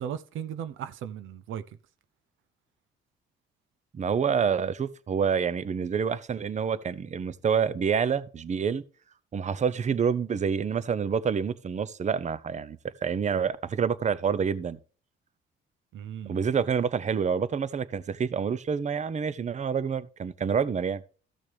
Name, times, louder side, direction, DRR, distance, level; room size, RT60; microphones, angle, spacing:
voice 1, 0.0-1.6 15.9-16.4, right 9 dB, 80° right, 0.6 m, -36 dB
voice 2, 3.9-8.8 9.3-14.8 16.3-21.0, right 6 dB, 35° right, 0.7 m, -27 dB
14.0 x 6.3 x 3.4 m
cardioid pair, 90°, 20 cm